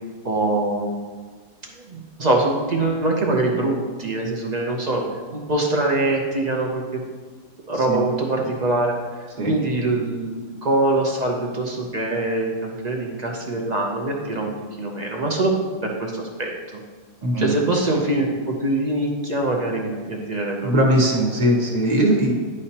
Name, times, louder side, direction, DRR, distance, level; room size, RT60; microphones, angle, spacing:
voice 1, 0.2-0.9 1.8-5.0 5.3-6.8 7.7-9.0 9.5-14.5 14.8-15.5 15.8-16.5 17.4-20.7, right 2 dB, 55° right, 0 dB, 0.4 m, -23 dB
voice 2, 17.2-17.5 20.6-22.4, right 1 dB, 30° right, -1 dB, 1.2 m, -20 dB
10.5 x 4.9 x 2.9 m, 1.5 s
omnidirectional pair, 1.7 m